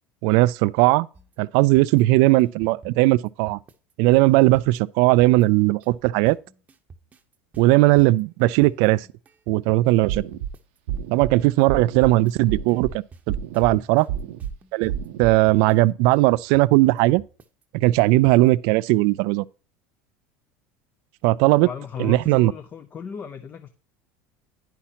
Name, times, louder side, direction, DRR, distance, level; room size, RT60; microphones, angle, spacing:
voice 1, 0.2-1.1 1.4-3.6 4.0-6.4 7.6-9.1 9.5-10.2 11.1-14.1 14.7-14.9 15.2-17.2 17.7-19.4 21.2-21.7 22.0-22.5, right 19 dB, 70° right, 0.3 m, -18 dB
sound 1, 1.1-18.7, right 3 dB, 25° right, 0.8 m, -48 dB
sound 2, 10.1-10.5 10.9-11.3 11.7-12.1 12.5-12.9 13.3-13.7 14.1-14.5 14.9-15.3, right 10 dB, 85° right, 0.7 m, -29 dB
voice 2, 21.6-23.7, left 6 dB, 30° left, 0.6 m, -36 dB
9.9 x 5.8 x 2.8 m
supercardioid pair, 115°, 6 cm